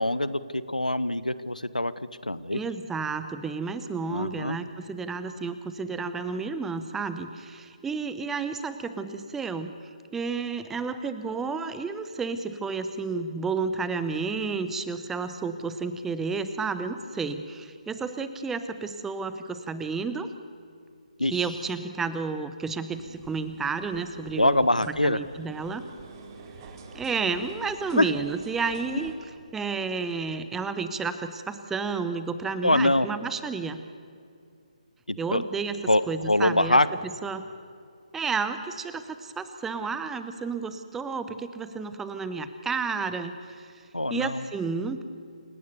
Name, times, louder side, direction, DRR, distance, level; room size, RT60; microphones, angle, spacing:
voice 1, 0.0-1.9 2.3-2.6 4.1-4.6 21.2-21.3 24.4-25.2 28.0-28.1 32.6-33.1 35.1-35.4 35.9-36.9 43.9-44.4, left 1 dB, 90° left, 16 dB, 1.1 m, -24 dB
voice 2, 2.5-9.7 10.1-20.3 21.2-24.6 24.9-25.8 26.9-29.1 29.5-33.8 35.2-36.8 37.2-37.5 38.1-45.0, right 4 dB, 5° right, 10 dB, 0.8 m, -31 dB
sound 1, 22.9-29.2, right 4 dB, 30° right, 2.5 m, -47 dB
29.0 x 17.0 x 7.0 m, 2.4 s
figure-of-eight pair, 145°, 4 cm